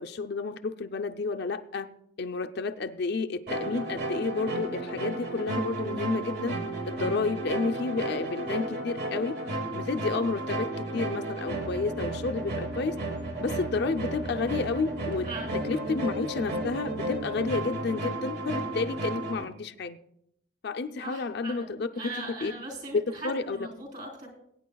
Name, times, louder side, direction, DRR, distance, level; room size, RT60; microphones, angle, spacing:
voice 1, 0.0-1.9 2.2-6.6 6.8-9.4 9.7-12.9 13.4-20.0 20.6-22.1 22.4-22.5 23.2-23.6, left 4 dB, 55° left, 0.5 m, -31 dB
sound 1, 3.5-19.4, right 2 dB, 55° right, 1.3 m, -33 dB
voice 2, 15.2-15.9 21.0-24.3, right 2 dB, 40° right, 3.5 m, -40 dB
22.5 x 9.2 x 2.3 m
head